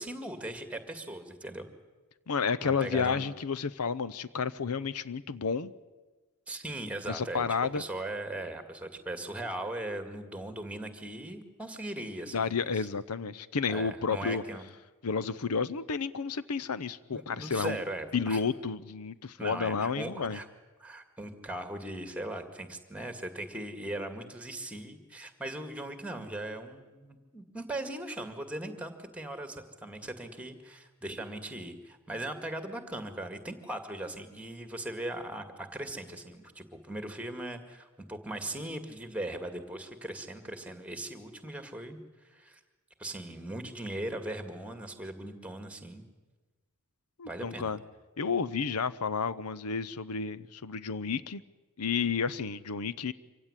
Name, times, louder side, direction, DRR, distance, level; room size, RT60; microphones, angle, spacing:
voice 1, 0.0-1.7 2.6-3.2 6.5-7.5 7.7-12.4 12.7-12.9 13.7-14.6 17.1-18.4 19.4-20.5 20.8-42.0 42.2-42.6 43.0-46.0 47.3-47.7, right 1 dB, 5° right, 8 dB, 2.0 m, -39 dB
voice 2, 2.3-5.7 7.1-7.8 12.3-14.4 15.0-17.8 18.1-20.4 47.2-47.8 48.2-51.4 51.8-53.1, left 5 dB, 85° left, 17 dB, 0.7 m, -31 dB
25.0 x 16.5 x 9.9 m, 1.3 s
head